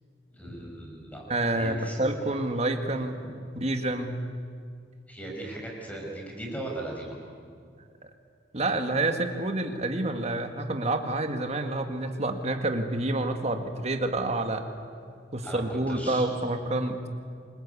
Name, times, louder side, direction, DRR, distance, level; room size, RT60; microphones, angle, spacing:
voice 1, 0.3-1.2 1.5-2.0 5.1-7.2 15.4-16.3, right 1 dB, 10° left, -1 dB, 6.3 m, -38 dB
voice 2, 1.3-3.2 3.6-4.2 8.0-8.1 8.5-14.6 15.3-17.0, right 2 dB, 35° right, 6 dB, 1.9 m, -28 dB
27.5 x 21.5 x 8.5 m, 2.2 s
head